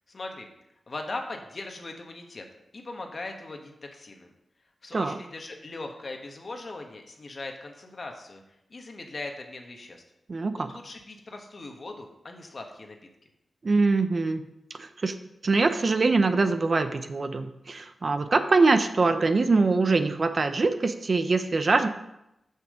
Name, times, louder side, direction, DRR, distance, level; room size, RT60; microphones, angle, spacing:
voice 1, 0.1-0.5 0.9-2.4 2.7-4.3 4.8-8.4 8.7-10.0 10.6-13.0, left 2 dB, 55° left, 3 dB, 1.3 m, -39 dB
voice 2, 10.3-10.7 13.6-14.4 14.8-15.1 15.4-21.9, right 3 dB, 55° right, 9 dB, 0.7 m, -23 dB
6.6 x 6.1 x 5.0 m, 0.86 s
cardioid pair, 40°, 0 cm